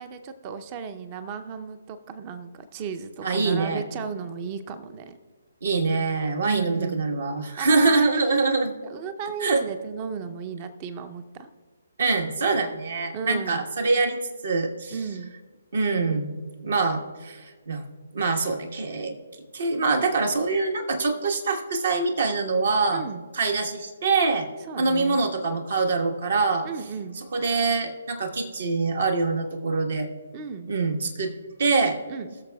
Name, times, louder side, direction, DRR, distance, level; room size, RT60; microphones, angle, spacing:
voice 1, 0.0-5.2 6.5-7.0 7.6-8.4 8.8-11.5 13.1-13.7 14.9-15.3 22.9-23.2 24.7-25.2 26.6-27.2 30.3-30.7 32.1-32.3, right 6 dB, 30° right, 11 dB, 0.6 m, -35 dB
voice 2, 3.2-3.8 5.6-8.8 9.4-9.6 12.0-14.2 14.4-14.9 15.7-16.4 16.6-17.9 18.1-19.2 19.5-23.0 23.3-24.5 24.8-26.7 27.3-30.1 30.7-31.3 31.6-32.0, right 3 dB, 60° right, 4 dB, 1.3 m, -24 dB
19.5 x 6.7 x 2.3 m, 1.5 s
figure-of-eight pair, 135°, 0 cm